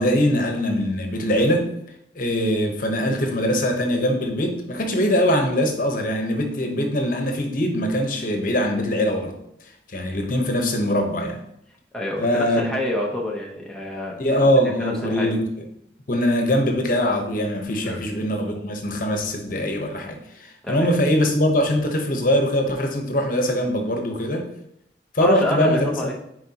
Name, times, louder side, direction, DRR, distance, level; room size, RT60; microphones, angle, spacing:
voice 1, 0.0-1.7 2.1-9.3 9.9-11.4 12.2-12.7 14.2-15.7 16.1-24.5 25.1-26.0, equal, 50° left, 3 dB, 1.0 m, -22 dB
voice 2, 11.9-14.2 14.8-15.3 17.8-18.0 20.6-20.9 25.2-26.1, left 1 dB, 5° left, -3 dB, 0.9 m, -27 dB
10.0 x 4.7 x 2.9 m, 0.78 s
head